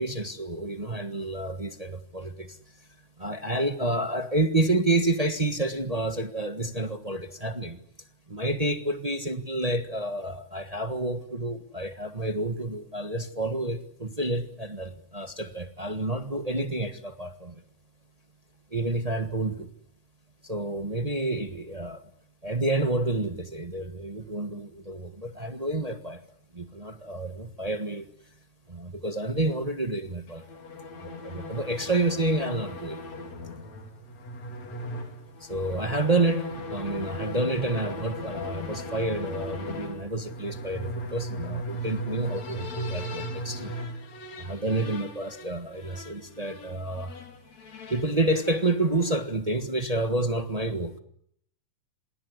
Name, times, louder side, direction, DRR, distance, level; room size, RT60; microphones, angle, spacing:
voice 1, 0.0-2.6 3.2-7.8 8.3-17.6 18.7-19.7 20.4-22.0 22.4-26.2 26.5-28.1 28.7-30.5 31.0-33.0 35.4-43.7 44.4-47.1 47.9-51.0, right 2 dB, 30° right, 0.6 m, -29 dB
sound 1, 30.3-49.3, left 1 dB, 60° left, 4.4 m, -38 dB
28.0 x 26.0 x 8.2 m
omnidirectional pair, 3.5 m